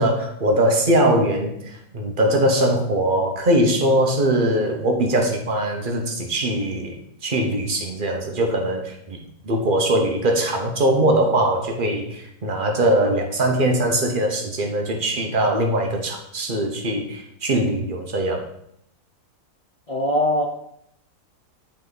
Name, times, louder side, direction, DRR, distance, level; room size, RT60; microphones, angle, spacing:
voice 1, 0.0-18.5, right 1 dB, 35° right, 2 dB, 1.0 m, -21 dB
voice 2, 19.9-20.5, left 1 dB, 55° left, 0 dB, 0.4 m, -21 dB
8.0 x 4.2 x 4.0 m, 0.73 s
omnidirectional pair, 1.7 m